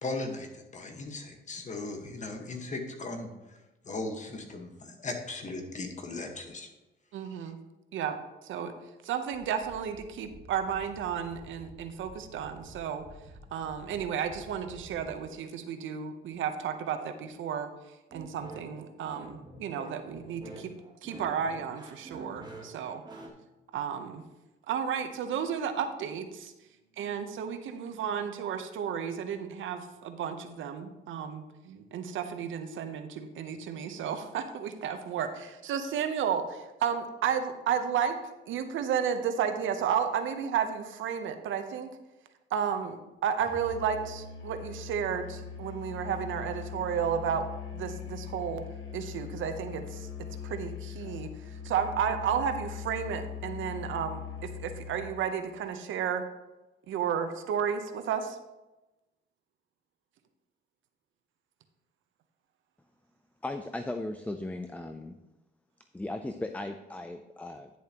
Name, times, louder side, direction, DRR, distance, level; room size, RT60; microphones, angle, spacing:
voice 1, 0.0-3.6 3.8-6.7, left 2 dB, 35° left, 4 dB, 1.5 m, -38 dB
voice 2, 7.1-7.6 7.9-8.2 8.4-13.0 13.5-20.7 21.0-23.0 23.7-24.2 24.7-26.5 27.0-38.1 38.5-41.9 42.5-47.5 47.7-48.6 48.9-50.1 50.4-56.3 56.9-58.4, right 8 dB, 75° right, 8 dB, 0.9 m, -32 dB
sound 1, 9.3-15.1, right 1 dB, 45° right, 1.8 m, -51 dB
sound 2, 18.1-23.3, right 2 dB, 20° right, 1.6 m, -47 dB
Musical instrument, 43.4-55.2, left 8 dB, 75° left, 1.4 m, -41 dB
voice 3, 63.4-65.1 65.9-67.7, left 2 dB, 5° left, 8 dB, 0.4 m, -37 dB
10.5 x 7.1 x 3.0 m, 1.0 s
cardioid pair, 90°, 20 cm